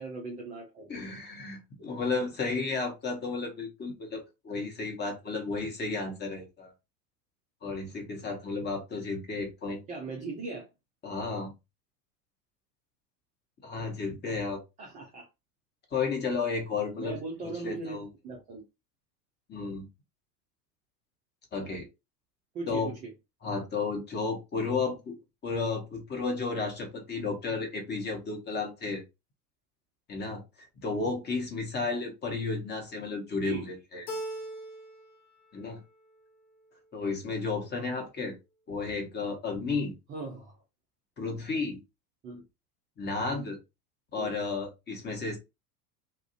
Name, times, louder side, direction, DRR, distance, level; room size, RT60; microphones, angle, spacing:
voice 1, 0.0-0.9 9.9-10.7 14.8-15.3 17.0-18.6 22.5-23.1 33.4-33.7 40.1-40.6 42.2-42.4 44.1-44.4, right 3 dB, 20° right, 0.3 m, -38 dB
voice 2, 0.9-6.7 7.6-9.8 11.0-11.5 13.6-14.6 15.9-17.2 17.4-18.1 19.5-19.9 21.5-21.9 22.7-22.9 23.4-25.2 25.4-29.0 30.1-34.1 35.5-35.8 36.9-38.3 38.7-39.9 41.2-41.8 43.0-43.6 44.1-45.4, left 4 dB, 20° left, 0.8 m, -33 dB
Keyboard (musical), 34.1-35.2 35.5-36.2, right 1 dB, 70° left, 0.9 m, -40 dB
2.4 x 2.1 x 2.4 m
hypercardioid pair, 90°, 49 cm